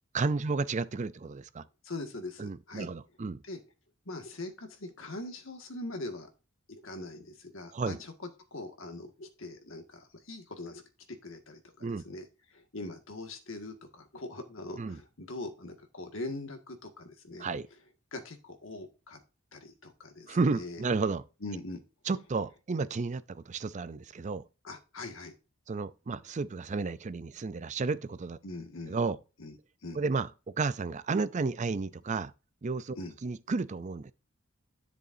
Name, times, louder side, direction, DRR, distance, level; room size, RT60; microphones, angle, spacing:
voice 1, 0.1-1.6 2.4-3.4 7.7-8.0 11.8-12.0 14.8-15.0 17.4-17.7 20.3-21.2 22.1-24.4 25.7-28.4 28.9-29.2 29.9-30.3 30.6-32.3 32.6-33.0 33.2-34.1, right 4 dB, 35° right, 0.4 m, -32 dB
voice 2, 1.8-2.9 3.5-3.6 4.1-6.3 6.7-8.1 8.5-10.8 11.2-12.3 12.5-17.5 18.1-19.2 19.5-20.8 21.4-21.8 24.6-25.3 28.4-29.0 29.4-30.0 33.0-33.1, left 2 dB, 65° left, 1.9 m, -42 dB
10.5 x 6.8 x 2.7 m
head